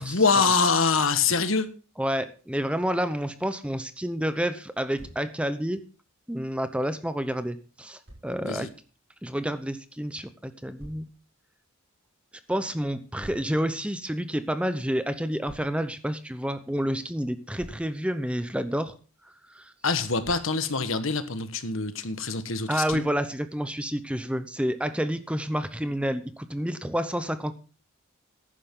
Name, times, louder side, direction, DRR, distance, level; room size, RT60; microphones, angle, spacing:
voice 1, 0.0-1.7 8.4-8.7 19.8-23.1, left 4 dB, 65° left, 1.4 m, -25 dB
voice 2, 2.0-5.8 6.3-8.7 9.2-11.1 12.5-18.9 19.5-19.7 22.7-27.5, equal, 5° right, 0.7 m, -29 dB
Thump thud, 5.0-5.3 8.1-8.3 10.8-11.1 13.2-13.5 15.4-15.7 17.6-17.9 20.0-20.5 22.9-23.2, equal, 55° right, 6.2 m, -46 dB
14.5 x 11.5 x 3.8 m
head